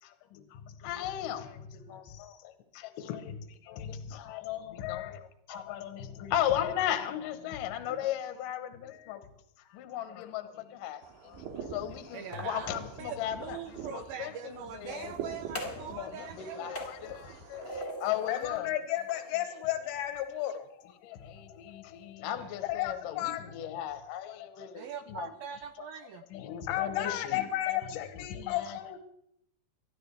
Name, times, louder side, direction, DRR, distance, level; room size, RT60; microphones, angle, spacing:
voice 1, 0.0-3.4 3.6-5.2 5.5-9.2 9.6-11.4 11.7-13.6 13.9-15.4 15.6-18.7 21.0-25.3 25.8-25.9 26.3-28.0 28.3-28.8, left 11 dB, 70° left, 8 dB, 2.2 m, -37 dB
sound 1, 11.0-17.8, right 7 dB, 65° right, 3.2 m, -45 dB
sound 2, 12.1-13.6 14.7-15.9 16.2-18.5 18.9-20.3, equal, 25° left, 1.7 m, -44 dB
voice 2, 12.1-16.8 22.3-22.5 24.7-26.3, right 8 dB, 85° right, 8 dB, 2.1 m, -42 dB
voice 3, 18.3-20.6 22.6-23.5 26.7-29.0, left 13 dB, 85° left, 8 dB, 3.3 m, -33 dB
24.5 x 11.0 x 3.4 m, 0.75 s
omnidirectional pair, 5.0 m